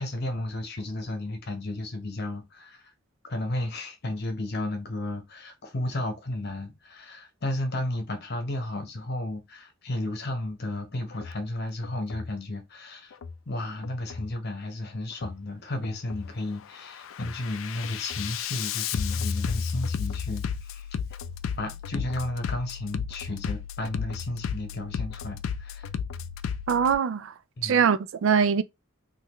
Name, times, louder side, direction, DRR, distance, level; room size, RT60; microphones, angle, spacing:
voice 1, 0.0-2.9 3.2-13.1 13.5-21.0 21.6-25.9 27.6-27.8, left 1 dB, 55° left, 1.0 m, -33 dB
Bass drum, 11.1-11.4 11.8-12.3 13.1-13.4 13.8-14.3 15.1-15.4 15.8-16.3 16.7-27.0, left 6 dB, 70° left, 0.3 m, -33 dB
voice 2, 26.7-27.3 27.6-28.6, right 7 dB, 70° right, 0.3 m, -22 dB
3.8 x 2.5 x 3.0 m
head